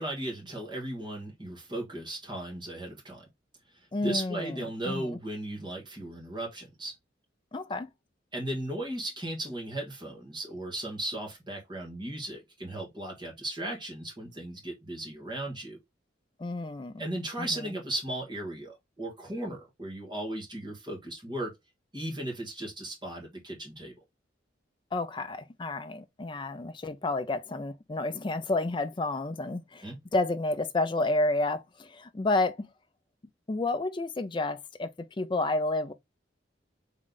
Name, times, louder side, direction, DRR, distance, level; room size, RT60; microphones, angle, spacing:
voice 1, 0.0-3.2 3.7-6.9 8.3-15.8 17.0-21.5 21.9-23.9 29.8-30.0, right 1 dB, 25° right, 1.5 m, -36 dB
voice 2, 3.9-4.5 4.9-5.2 7.5-7.9 16.4-17.1 17.4-17.7 24.9-29.9 30.1-32.7 33.5-34.9 35.2-35.9, left 2 dB, 25° left, 0.4 m, -30 dB
3.7 x 3.1 x 3.8 m
head